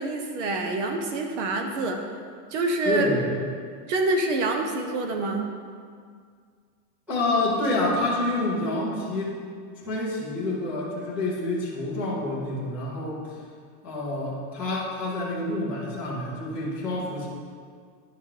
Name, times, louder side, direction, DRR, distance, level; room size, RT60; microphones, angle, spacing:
voice 1, 0.0-2.0 2.5-3.1 3.9-5.5, right 2 dB, 45° right, 4 dB, 0.8 m, -26 dB
voice 2, 2.8-3.3 7.1-9.4 9.8-13.4 13.8-17.3, left 2 dB, 5° right, -13 dB, 0.5 m, -28 dB
11.0 x 5.6 x 3.2 m, 2.1 s
supercardioid pair, 180°, 48 cm